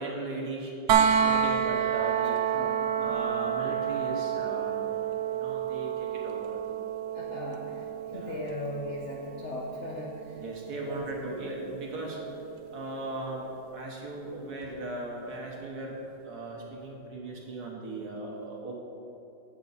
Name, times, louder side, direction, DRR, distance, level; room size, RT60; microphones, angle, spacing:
voice 1, 0.0-2.3 3.0-4.8 5.3-6.6 8.1-8.4 10.4-12.2 12.7-18.8, right 2 dB, 55° right, -2 dB, 1.5 m, -38 dB
sound 1, 0.9-12.7 14.6-14.7, right 8 dB, 80° right, 0.9 m, -30 dB
voice 2, 7.1-10.4 10.7-11.4, left 1 dB, 65° left, -2 dB, 0.7 m, -38 dB
8.5 x 7.8 x 4.0 m, 2.9 s
omnidirectional pair, 2.3 m